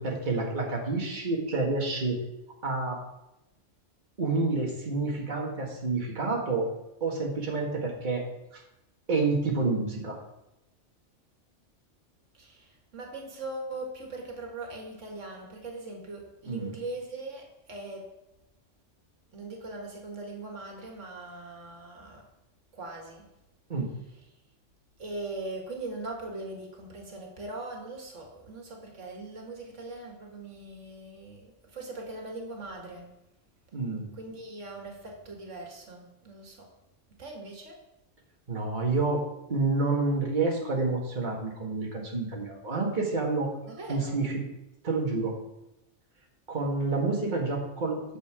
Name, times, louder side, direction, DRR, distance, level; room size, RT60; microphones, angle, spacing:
voice 1, 0.0-2.2 2.6-3.0 4.2-6.7 7.0-8.2 8.5-8.6 9.1-10.2 16.5-16.7 23.7-23.9 33.7-34.1 38.5-39.2 39.5-43.5 43.9-44.3 44.8-45.3 46.5-48.2, right 3 dB, 40° right, -1 dB, 1.8 m, -28 dB
voice 2, 12.3-18.1 19.3-22.2 22.7-23.2 25.0-33.1 34.1-36.7 37.2-37.8 43.7-44.2, right 2 dB, 85° right, 1 dB, 2.1 m, -40 dB
9.3 x 6.8 x 4.8 m, 0.90 s
omnidirectional pair, 1.2 m